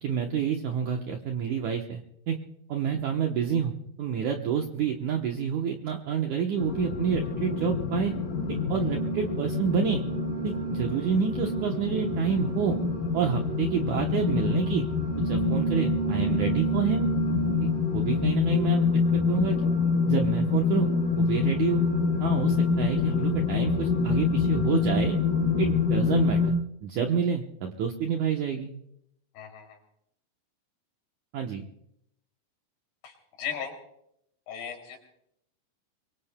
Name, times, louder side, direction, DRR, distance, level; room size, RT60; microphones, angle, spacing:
voice 1, 0.0-2.4 2.7-3.7 4.0-8.1 8.5-10.0 10.4-12.8 13.1-14.9 15.2-17.1 17.6-18.9 19.1-19.6 20.1-20.9 21.2-21.8 22.2-25.2 25.6-26.5 26.8-28.7 31.3-31.6, right 7 dB, 75° right, 2 dB, 1.8 m, -28 dB
sound 1, 6.6-26.5, left 4 dB, 55° left, 4.4 m, -26 dB
voice 2, 33.4-33.7 34.5-35.0, left 8 dB, 70° left, 2 dB, 4.8 m, -35 dB
24.5 x 23.5 x 2.2 m, 0.75 s
omnidirectional pair, 4.7 m